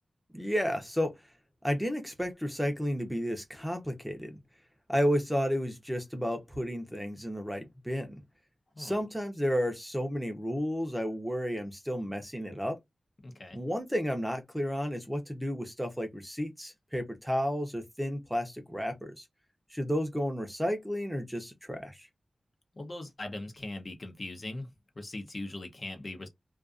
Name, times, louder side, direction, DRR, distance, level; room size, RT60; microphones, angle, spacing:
voice 1, 0.3-1.1 1.6-4.4 4.9-8.2 8.8-12.8 13.5-19.3 19.7-22.1, equal, ahead, 0.7 m, -32 dB
voice 2, 13.2-13.6 22.7-24.7 25.0-26.3, left 2 dB, 45° left, 0.7 m, -40 dB
2.4 x 2.4 x 2.4 m
wide cardioid pair, 90°, 0 cm